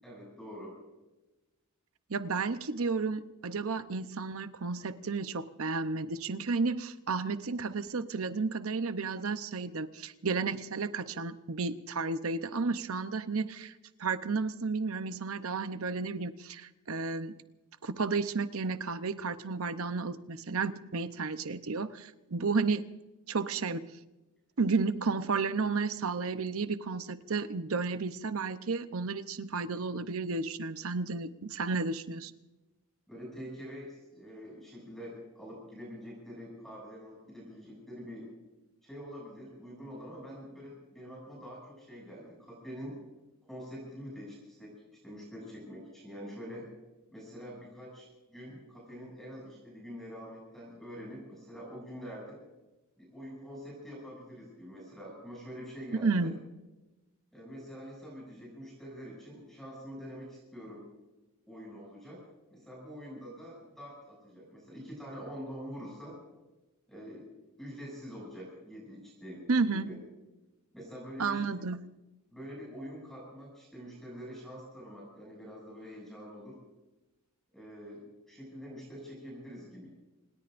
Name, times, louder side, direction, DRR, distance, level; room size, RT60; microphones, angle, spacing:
voice 1, 0.0-0.8 22.4-22.5 33.1-38.3 38.8-43.0 43.4-46.7 47.1-52.4 53.0-56.3 57.3-60.9 61.5-62.2 62.5-66.2 66.9-67.3 67.6-70.0 70.7-71.6 72.3-76.6 77.5-79.9, equal, ahead, -4 dB, 7.2 m, -45 dB
voice 2, 2.1-13.7 14.0-17.3 17.8-22.8 23.3-23.9 24.6-32.3 56.0-56.3 69.5-69.8 71.2-71.9, right 4 dB, 70° right, 11 dB, 0.8 m, -32 dB
27.0 x 20.0 x 2.6 m, 1.1 s
head